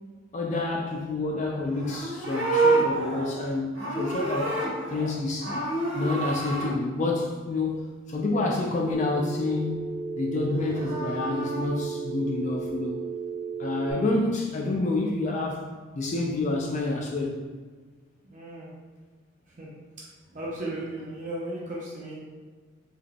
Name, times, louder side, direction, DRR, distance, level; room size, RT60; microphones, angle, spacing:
voice 1, 0.3-4.6 4.9-5.5 5.9-13.0 13.6-15.7 15.9-17.4, left 2 dB, 35° left, 0 dB, 0.3 m, -28 dB
Livestock farm animals working animals, 1.7-5.1 5.4-6.7 10.5-11.7, right 2 dB, 80° right, 1.3 m, -28 dB
Telephone, 8.9-13.9, right 5 dB, 15° left, 1.3 m, -34 dB
voice 2, 18.2-18.7 19.6-19.7 20.3-22.2, right 1 dB, 40° right, -6 dB, 0.7 m, -35 dB
3.7 x 3.5 x 2.3 m, 1.5 s
head